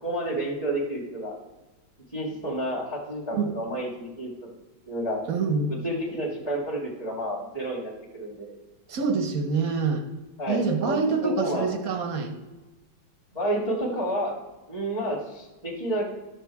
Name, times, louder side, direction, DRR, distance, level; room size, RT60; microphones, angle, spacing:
voice 1, 0.0-1.4 2.1-4.5 4.9-5.2 5.7-8.6 10.4-11.7 13.3-14.3 14.7-16.1, right 1 dB, 15° left, -6 dB, 1.9 m, -30 dB
voice 2, 5.3-5.7 8.9-10.1 10.5-12.3, right 4 dB, 55° right, 7 dB, 1.1 m, -26 dB
12.5 x 6.5 x 4.7 m, 1.1 s
omnidirectional pair, 2.2 m